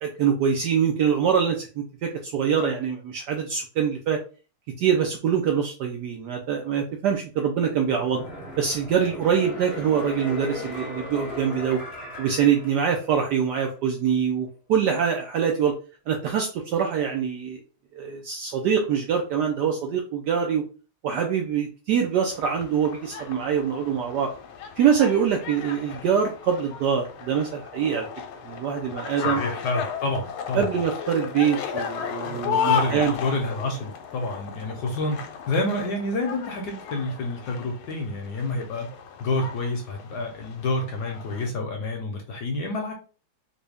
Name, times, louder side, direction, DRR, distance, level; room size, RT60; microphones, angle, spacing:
voice 1, 0.0-4.2 4.8-8.2 8.6-11.8 12.2-15.7 16.1-17.6 17.9-20.6 21.0-24.3 24.8-28.1 28.5-29.4 30.5-33.1, right 7 dB, 75° right, 2 dB, 1.0 m, -24 dB
sound 1, 7.8-13.4 13.8-13.9, left 1 dB, 45° left, 0.8 m, -38 dB
sound 2, 22.3-41.5, left 7 dB, 85° left, 1.4 m, -34 dB
voice 2, 29.2-30.7 32.2-38.9 39.2-42.9, left 2 dB, 65° left, 2 dB, 1.1 m, -29 dB
3.9 x 2.2 x 3.4 m, 0.36 s
omnidirectional pair, 2.3 m